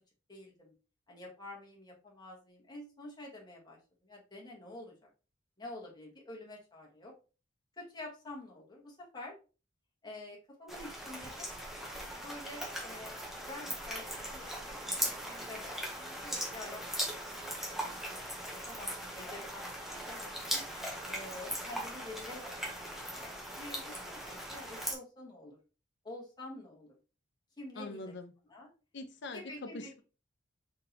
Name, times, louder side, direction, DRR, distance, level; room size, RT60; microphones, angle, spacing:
voice 1, 0.3-0.7 1.1-5.1 5.6-7.1 7.8-9.3 10.0-11.5 12.1-16.8 17.3-18.2 18.7-20.6 21.1-25.6 26.0-27.0 27.6-28.1 28.4-28.7 29.3-30.0, left 2 dB, 20° left, -3 dB, 1.3 m, -48 dB
sound 1, 10.7-25.0, equal, ahead, 0.8 m, -39 dB
voice 2, 27.8-28.3 28.9-30.0, left 3 dB, 55° left, 7 dB, 0.6 m, -43 dB
3.9 x 3.7 x 2.8 m, 0.33 s
head